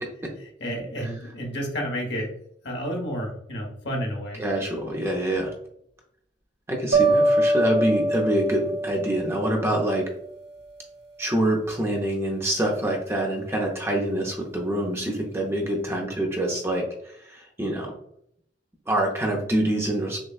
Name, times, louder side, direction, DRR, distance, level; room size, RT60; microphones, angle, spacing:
voice 1, 0.6-2.3 2.6-4.4, equal, 65° left, -1 dB, 1.3 m, -30 dB
voice 2, 4.4-5.5 6.7-10.1 11.2-17.9 18.9-20.2, right 1 dB, 15° right, 0 dB, 0.6 m, -26 dB
sound 1, 6.9-10.0, right 1 dB, 85° right, 1.5 m, -23 dB
6.3 x 2.2 x 2.4 m, 0.71 s
head